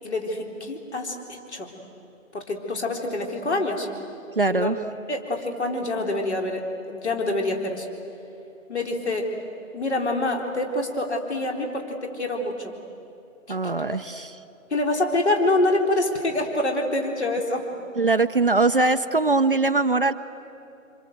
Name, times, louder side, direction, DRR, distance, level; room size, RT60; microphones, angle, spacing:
voice 1, 0.0-1.7 2.3-3.9 4.5-4.7 5.1-7.9 8.7-9.3 9.7-12.7 13.5-13.6 14.7-17.7, left 2 dB, 55° left, 2 dB, 4.1 m, -26 dB
voice 2, 4.4-4.8 13.5-14.3 18.0-20.1, right 3 dB, 40° right, 9 dB, 0.7 m, -21 dB
27.5 x 26.5 x 8.0 m, 2.8 s
figure-of-eight pair, 160°, 41 cm